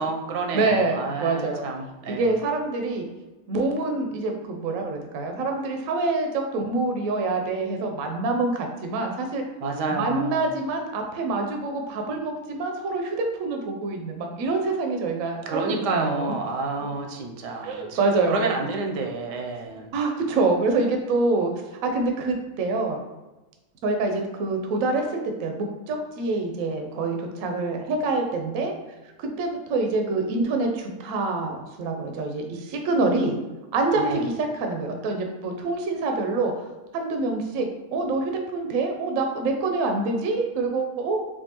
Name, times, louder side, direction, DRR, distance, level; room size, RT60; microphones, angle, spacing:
voice 1, 0.0-2.3 9.6-10.5 15.5-18.0 18.3-19.9 34.0-34.3, right 3 dB, 85° right, 3 dB, 1.2 m, -29 dB
voice 2, 0.5-1.7 2.1-3.0 3.5-9.4 9.9-16.3 17.6-18.5 19.9-21.5 21.8-23.0 23.8-28.7 29.2-33.4 33.7-36.5 36.9-41.4, right 3 dB, 65° right, 4 dB, 0.9 m, -26 dB
4.4 x 2.5 x 2.9 m, 1.1 s
omnidirectional pair, 1.8 m